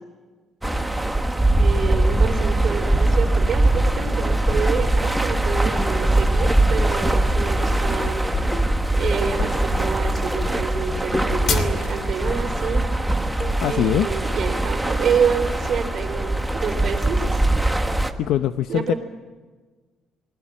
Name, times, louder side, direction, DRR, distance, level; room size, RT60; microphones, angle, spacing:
sound 1, 0.6-18.1, right 1 dB, 5° right, 1.3 m, -21 dB
voice 1, 1.6-8.2 8.9-12.8 13.6-17.4 18.7-19.0, right 6 dB, 45° right, 6 dB, 4.2 m, -27 dB
sound 2, 7.5-12.2, left 5 dB, 50° left, 2.8 m, -30 dB
sound 3, 8.5-9.5 11.1-12.1 13.4-14.1, left 2 dB, 15° left, 2.5 m, -37 dB
voice 2, 13.6-14.1 18.2-18.9, left 11 dB, 70° left, 10 dB, 0.7 m, -22 dB
29.5 x 21.5 x 7.5 m, 1.4 s
cardioid pair, 155°, 0 cm